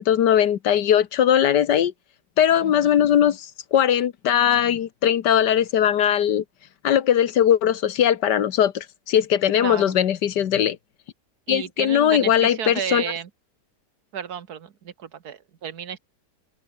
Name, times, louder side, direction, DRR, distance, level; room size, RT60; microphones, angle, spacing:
voice 1, 0.0-1.9 2.4-6.4 6.8-10.8 11.5-13.0, left 10 dB, 85° left, 1.7 m, -20 dB
voice 2, 2.6-3.0 9.6-9.9 11.5-13.3 14.1-16.0, right 8 dB, 65° right, 1.7 m, -32 dB
open air
omnidirectional pair, 1.8 m